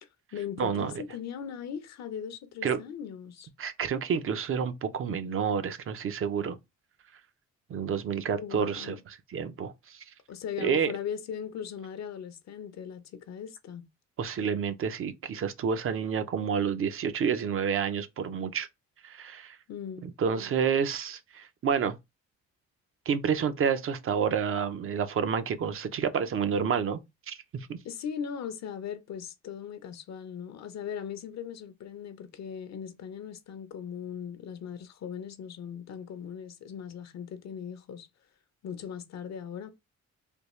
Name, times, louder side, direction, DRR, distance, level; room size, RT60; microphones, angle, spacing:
voice 1, 0.0-3.5 8.3-9.0 10.3-13.8 19.7-20.1 27.8-38.1 38.6-39.7, left 8 dB, 60° left, 0.6 m, -39 dB
voice 2, 0.6-0.9 2.6-2.8 3.6-6.6 7.7-10.0 10.6-10.9 14.2-18.7 19.0-19.6 20.0-22.0 23.1-27.0 27.3-27.7, right 7 dB, 45° right, 0.6 m, -29 dB
3.4 x 2.3 x 3.0 m
cardioid pair, 90°, 30 cm